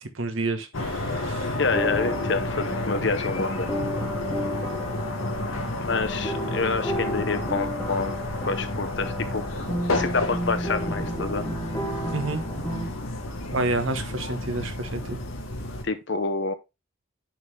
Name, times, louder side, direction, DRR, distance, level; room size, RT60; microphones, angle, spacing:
voice 1, 0.0-1.6 12.1-12.4 13.5-15.2, right 2 dB, 75° right, 1.1 m, -29 dB
sound 1, 0.7-15.8, left 2 dB, 90° left, 1.5 m, -31 dB
voice 2, 1.6-3.7 5.8-8.2 8.5-9.7 9.9-11.4 15.8-16.5, left 4 dB, 60° left, 0.9 m, -27 dB
sound 2, 1.7-12.9, equal, 15° left, 1.3 m, -33 dB
10.5 x 3.9 x 3.3 m
head